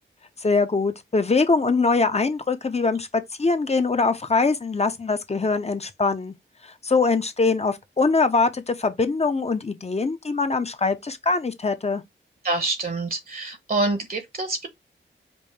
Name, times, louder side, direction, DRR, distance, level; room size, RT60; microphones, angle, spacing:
voice 1, 0.4-6.3 6.6-12.0, left 4 dB, 30° left, 0.6 m, -23 dB
voice 2, 12.4-14.7, right 2 dB, 45° right, 0.9 m, -26 dB
5.3 x 2.1 x 3.2 m
wide cardioid pair, 70°, 20 cm